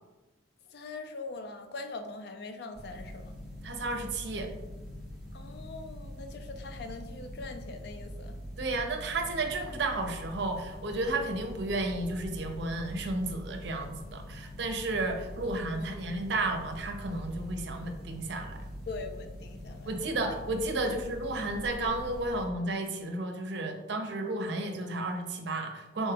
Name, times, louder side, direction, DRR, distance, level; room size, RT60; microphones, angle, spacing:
voice 1, 0.7-3.3 5.3-8.4 15.7-16.1 18.9-19.9, left 3 dB, 55° left, 6 dB, 0.4 m, -42 dB
sound 1, 2.7-22.4, left 1 dB, 5° right, 0.5 m, -43 dB
voice 2, 3.6-4.5 8.6-18.7 19.9-26.1, right 2 dB, 65° right, 5 dB, 0.5 m, -32 dB
4.1 x 2.2 x 3.3 m, 1.1 s
head